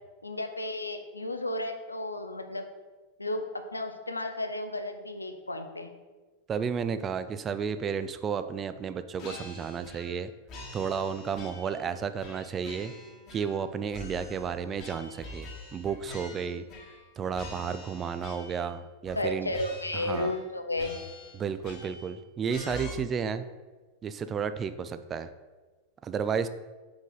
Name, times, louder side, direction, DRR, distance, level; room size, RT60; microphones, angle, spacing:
voice 1, 0.2-2.7 3.2-5.9 19.2-21.0, left 1 dB, 80° left, 7 dB, 0.5 m, -33 dB
voice 2, 6.5-10.3 10.7-12.9 13.3-16.6 17.2-19.5 19.9-20.3 21.3-23.5 24.0-25.3 26.0-26.5, right 6 dB, 25° right, 11 dB, 0.3 m, -32 dB
sound 1, 9.2-10.2 10.5-11.8 12.2-13.6 13.9-17.1 17.3-18.7 19.0-19.2 19.5-20.5 20.8-22.1 22.5-22.9, left 1 dB, 35° left, 1.3 m, -45 dB
5.4 x 4.8 x 3.9 m, 1.3 s
figure-of-eight pair, 90°, 0 cm